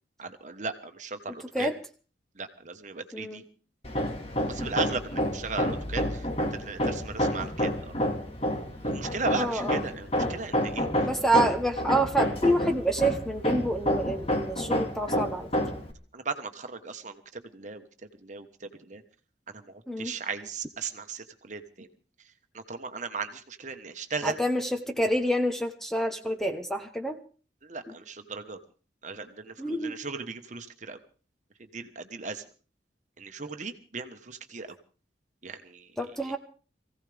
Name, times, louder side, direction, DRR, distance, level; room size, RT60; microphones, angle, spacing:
voice 1, 0.2-1.7 2.3-3.5 4.5-8.0 8.8-11.1 16.1-17.8 18.2-19.0 19.5-21.9 22.5-24.4 27.6-28.6 29.0-31.0 31.7-32.4 33.2-34.7 35.4-35.9 36.2-36.3, right 4 dB, 45° right, 7 dB, 1.3 m, -37 dB
Hammer, 3.8-15.9, equal, 35° left, 2.0 m, -29 dB
voice 2, 9.4-9.8 11.0-15.5 19.9-20.1 24.2-27.2 29.6-29.9 36.0-36.4, right 1 dB, ahead, 6 dB, 1.0 m, -27 dB
23.0 x 16.0 x 3.5 m, 0.39 s
head